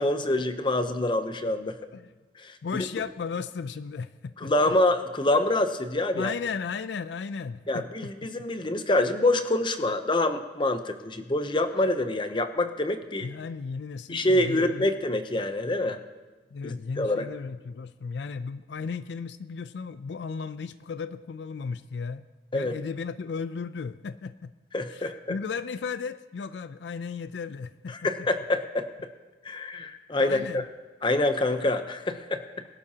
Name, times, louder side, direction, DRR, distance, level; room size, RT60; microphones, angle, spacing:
voice 1, 0.0-1.8 2.4-2.8 4.4-6.3 7.7-13.3 14.1-16.0 16.6-17.3 22.5-22.8 24.7-25.1 27.9-28.9 29.4-30.6 31.0-32.4, left 1 dB, 25° left, 9 dB, 0.7 m, -26 dB
voice 2, 2.6-4.7 6.1-8.1 13.2-14.9 16.5-22.2 22.5-24.5 24.9-28.1 30.2-30.6, left 5 dB, 75° left, 13 dB, 0.4 m, -35 dB
21.5 x 12.0 x 2.8 m, 1.3 s
head